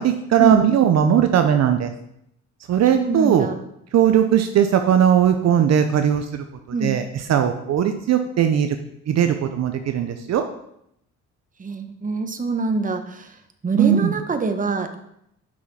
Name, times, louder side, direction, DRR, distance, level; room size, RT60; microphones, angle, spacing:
voice 1, 0.0-1.9 2.7-3.5 3.9-8.8 9.1-10.4 13.8-14.1, right 9 dB, 60° right, 7 dB, 0.6 m, -19 dB
voice 2, 2.9-3.5 6.7-7.0 11.6-13.3 13.6-15.0, right 3 dB, 25° right, 7 dB, 0.9 m, -24 dB
6.1 x 5.8 x 4.7 m, 0.76 s
cardioid pair, 90°, 30 cm